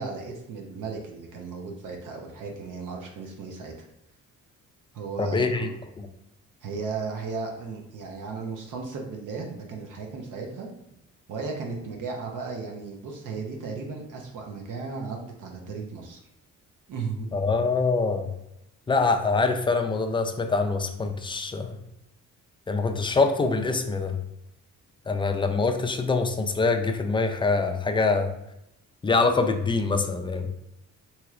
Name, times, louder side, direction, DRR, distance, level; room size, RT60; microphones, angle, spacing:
voice 1, 0.0-3.7 4.9-5.7 6.6-10.7 11.3-16.2 16.9-17.3, right 4 dB, 65° right, 1 dB, 0.7 m, -35 dB
voice 2, 5.2-5.7 6.0-6.1 17.3-18.3 18.9-21.8 22.7-24.2 25.1-28.3 29.0-30.5, left 4 dB, 15° left, 6 dB, 0.3 m, -24 dB
3.0 x 2.8 x 2.4 m, 0.84 s
cardioid pair, 70°, 33 cm